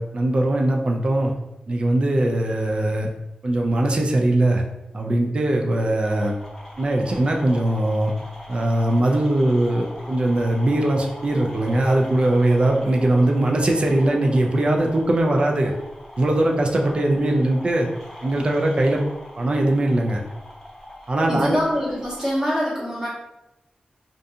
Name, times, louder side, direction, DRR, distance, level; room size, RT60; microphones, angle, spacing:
voice 1, 0.0-1.3 1.7-3.1 3.4-4.6 4.9-6.3 6.8-8.1 8.5-15.7 16.2-17.9 18.2-19.0 19.4-20.2 21.1-21.6, right 1 dB, 40° right, 1 dB, 0.4 m, -20 dB
Broken Toy Speaker, 6.0-22.4, left 1 dB, 15° left, 0.7 m, -42 dB
voice 2, 21.3-23.1, equal, 20° right, -8 dB, 1.1 m, -24 dB
2.5 x 2.3 x 2.6 m, 0.94 s
wide cardioid pair, 100°, 3 cm